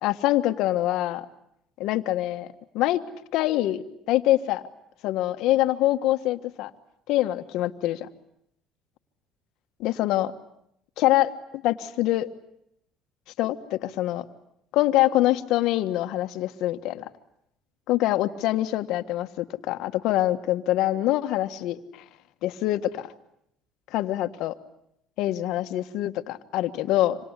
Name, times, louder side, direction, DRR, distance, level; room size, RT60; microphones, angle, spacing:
voice 1, 0.0-1.3 1.8-2.5 2.7-3.0 3.3-4.6 5.0-6.7 7.1-8.1 9.8-10.3 11.0-12.3 13.4-14.2 14.7-17.1 17.9-21.8 22.4-23.1 23.9-24.5 25.2-27.2, left 15 dB, 75° left, 9 dB, 1.5 m, -24 dB
26.5 x 26.5 x 8.3 m, 0.76 s
supercardioid pair, 95°, 0 cm